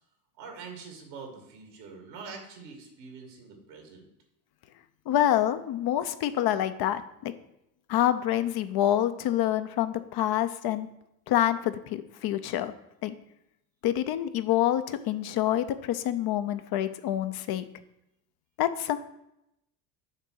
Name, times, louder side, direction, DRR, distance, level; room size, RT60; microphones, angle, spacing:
voice 1, 0.4-4.0, right 5 dB, 85° right, 2 dB, 2.3 m, -44 dB
voice 2, 5.1-7.3 7.9-10.9 11.3-12.7 13.0-13.2 13.8-17.6 18.6-19.0, left 12 dB, 50° left, 11 dB, 0.7 m, -27 dB
6.6 x 3.7 x 6.3 m, 0.84 s
hypercardioid pair, 75°, 50 cm